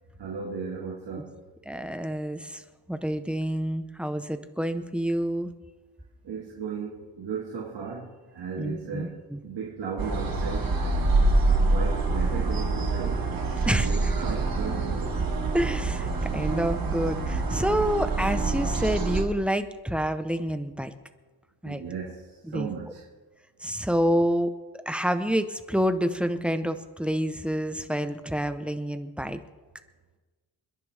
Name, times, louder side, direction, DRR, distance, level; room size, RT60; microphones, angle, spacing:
voice 1, 0.2-1.3 6.2-9.2 9.4-11.1 11.7-13.2 13.6-15.1 21.6-22.3 22.5-23.0, right 5 dB, 80° right, -3 dB, 2.1 m, -35 dB
voice 2, 1.7-2.6 2.9-5.5 8.6-9.4 13.7-14.1 15.5-20.9 21.6-21.8 22.4-22.7 23.6-24.5 24.9-29.4, equal, 5° right, 9 dB, 0.9 m, -28 dB
sound 1, 10.0-19.2, right 3 dB, 55° right, 2.0 m, -26 dB
28.5 x 10.5 x 3.5 m, 1.3 s
wide cardioid pair, 115°, 40 cm